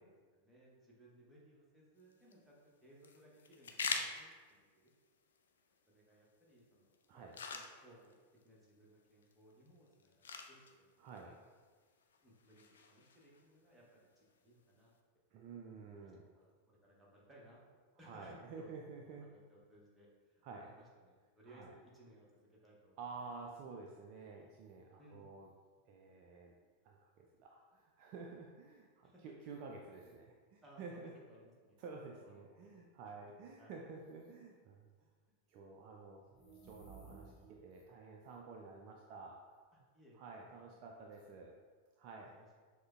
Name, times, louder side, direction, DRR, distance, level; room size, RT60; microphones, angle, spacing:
voice 1, 0.0-4.9 5.9-8.2 8.4-10.1 10.5-11.3 12.2-15.0 16.0-23.0 25.0-25.3 29.0-29.2 29.7-30.2 30.6-31.8 32.1-33.1 33.6-33.8 39.7-41.1 42.3-42.6, right 1 dB, 10° right, -5 dB, 0.9 m, -63 dB
sound 1, 2.0-15.0, left 5 dB, 65° left, 0.3 m, -48 dB
voice 2, 11.0-11.4 15.3-16.3 18.0-19.3 20.4-20.7 21.5-21.7 23.0-25.5 25.9-26.5 26.8-31.1 31.8-35.1 35.5-36.2 36.6-39.5 40.1-41.5 42.0-42.3, right 4 dB, 45° right, 0 dB, 0.3 m, -51 dB
sound 2, 36.3-37.8, right 4 dB, 25° left, 0.7 m, -57 dB
6.1 x 2.1 x 2.3 m, 1.5 s
figure-of-eight pair, 90°, 0 cm